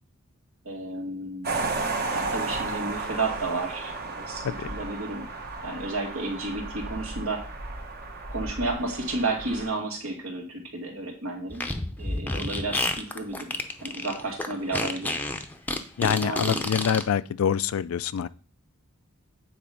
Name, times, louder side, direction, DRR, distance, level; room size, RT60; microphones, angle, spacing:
voice 1, 0.6-1.7 2.1-5.3 5.6-7.4 8.3-11.6 12.0-13.5 13.8-15.2 16.2-16.7, right 2 dB, 75° right, 2.2 m, -32 dB
sound 1, 1.4-9.7, right 3 dB, 45° right, 1.3 m, -33 dB
Fart, 11.5-17.0, left 2 dB, 10° left, 0.6 m, -30 dB
voice 2, 16.0-18.3, left 8 dB, 75° left, 0.4 m, -25 dB
8.6 x 4.2 x 5.0 m
head